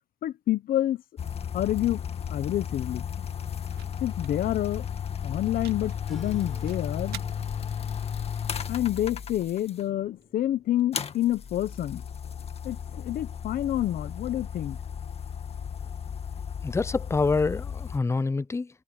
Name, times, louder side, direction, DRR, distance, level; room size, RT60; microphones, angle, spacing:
voice 1, 0.2-1.0 1.5-2.0 2.3-3.3 4.0-4.9 5.2-7.2 8.7-12.0 12.6-14.8, left 13 dB, 60° left, 1.1 m, -28 dB
sound 1, 1.2-9.8 10.9-18.0, left 8 dB, 35° left, 1.8 m, -34 dB
sound 2, 2.3-10.2, right 13 dB, 75° right, 2.2 m, -52 dB
sound 3, 6.0-11.1, equal, ahead, 6.2 m, -50 dB
voice 2, 16.6-18.7, left 4 dB, 15° left, 0.6 m, -26 dB
cardioid pair, 110°, 17 cm